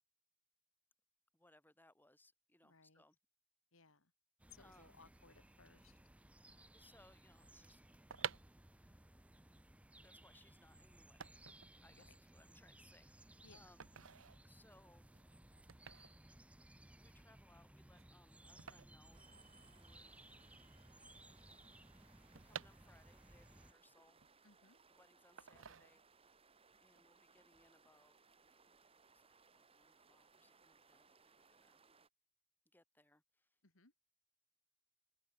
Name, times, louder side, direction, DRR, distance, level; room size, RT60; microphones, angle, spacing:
voice 1, 1.3-3.2 4.6-5.0 6.3-7.8 8.7-8.9 10.0-13.9 14.4-15.1 17.0-19.2 19.6-20.2 22.3-24.5 24.9-26.4 26.8-28.2 28.5-31.8 32.7-33.6, left 1 dB, 10° left, 3.5 m, -70 dB
voice 2, 2.6-3.0 3.7-4.1 4.5-6.0 12.0-12.1 13.4-13.7 24.4-24.8 33.6-33.9, left 5 dB, 85° left, 3.0 m, -65 dB
sound 1, 4.4-23.7, right 1 dB, 5° right, 0.6 m, -62 dB
sound 2, 8.1-20.0 20.2-20.3 20.5-23.4 23.8-24.8 25.4-26.4 26.7-27.0, right 7 dB, 75° right, 1.2 m, -52 dB
sound 3, 19.1-32.1, right 4 dB, 30° right, 2.5 m, -69 dB
head